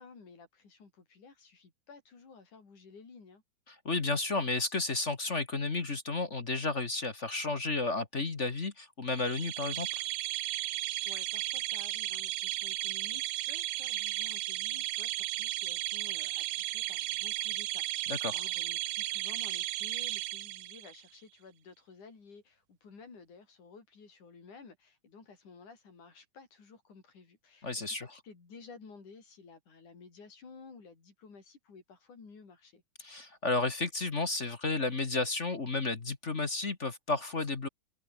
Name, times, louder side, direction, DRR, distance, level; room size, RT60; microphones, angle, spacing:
voice 1, 0.0-3.4 11.1-32.8, left 4 dB, 80° left, 6.9 m, -54 dB
voice 2, 3.7-9.9 18.1-18.4 27.6-28.1 33.0-37.7, left 3 dB, 30° left, 1.5 m, -32 dB
sound 1, 9.2-21.0, right 16 dB, 80° right, 2.1 m, -35 dB
omnidirectional pair, 3.4 m